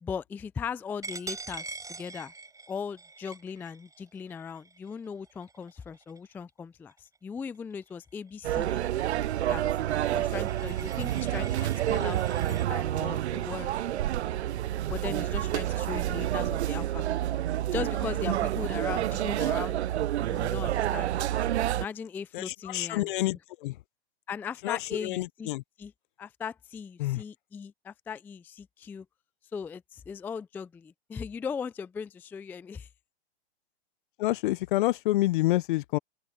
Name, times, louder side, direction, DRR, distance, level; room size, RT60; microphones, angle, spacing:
voice 1, 0.0-2.3 2.7-8.8 9.5-9.6 9.9-13.7 14.9-17.2 17.7-19.8 20.2-21.2 21.7-23.1 24.3-25.5 25.8-25.9 26.2-29.1 29.5-32.9, left 6 dB, 5° left, 0.4 m, -38 dB
Coin (dropping), 1.0-6.4 6.9-7.2 7.5-12.7, right 4 dB, 10° right, 5.0 m, -45 dB
sound 1, 8.4-21.9, right 12 dB, 70° right, 0.6 m, -29 dB
voice 2, 22.3-23.8 24.6-25.6 27.0-27.2 34.2-36.0, left 17 dB, 45° left, 0.7 m, -28 dB
hypercardioid pair, 120°, 34 cm